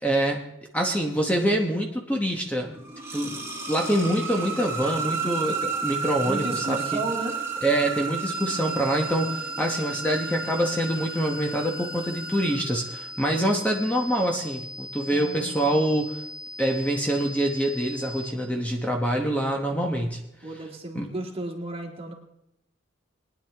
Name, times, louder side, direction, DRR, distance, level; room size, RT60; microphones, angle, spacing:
voice 1, 0.0-0.4 0.7-2.8 3.1-3.4 3.7-7.0 7.6-16.2 16.6-20.2 20.9-21.1, right 1 dB, 10° left, 1 dB, 1.0 m, -25 dB
sound 1, 2.6-13.4, right 5 dB, 15° right, 2.6 m, -32 dB
voice 2, 6.2-7.4 15.1-15.8 20.4-22.1, right 2 dB, 30° right, 1 dB, 1.9 m, -34 dB
sound 2, 8.3-18.3, left 1 dB, 25° left, 3.0 m, -40 dB
20.5 x 10.0 x 3.4 m, 0.84 s
head